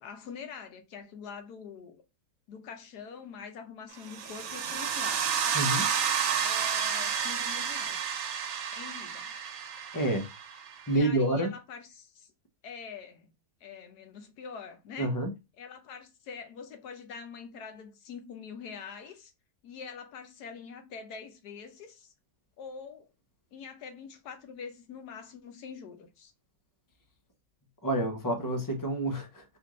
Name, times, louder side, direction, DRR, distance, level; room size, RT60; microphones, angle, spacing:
voice 1, 0.0-2.0 2.5-5.7 6.4-8.2 8.7-9.3 10.9-12.3 12.6-13.3 13.6-15.1 15.6-19.3 19.6-22.1 22.6-23.1 23.5-26.3, left 6 dB, 75° left, 1.3 m, -44 dB
sound 1, 4.0-10.9, right 7 dB, 90° right, 1.3 m, -31 dB
voice 2, 9.9-10.3 10.9-11.5 15.0-15.3 27.8-29.4, right 1 dB, 25° left, 0.4 m, -28 dB
4.2 x 2.4 x 3.0 m
omnidirectional pair, 1.8 m